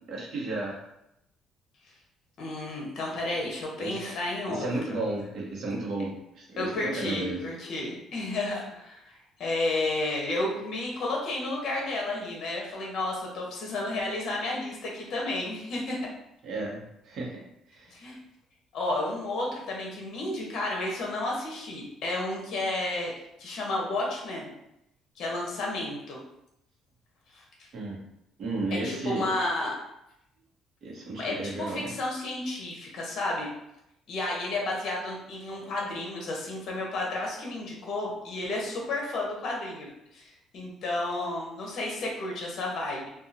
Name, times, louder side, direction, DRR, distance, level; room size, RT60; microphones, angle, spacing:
voice 1, 0.1-0.8 3.8-4.0 4.5-7.4 16.4-18.0 27.7-28.0 28.4-29.4 30.8-31.9, right 2 dB, 55° right, -3 dB, 0.9 m, -33 dB
voice 2, 2.4-4.7 6.6-16.1 17.9-18.2 18.7-23.1 23.4-24.5 25.2-26.2 27.3-27.7 28.7-29.7 31.2-33.5 34.1-39.9 40.1-43.1, left 2 dB, 60° left, -1 dB, 0.8 m, -32 dB
2.8 x 2.3 x 2.6 m, 0.82 s
cardioid pair, 125°, 0 cm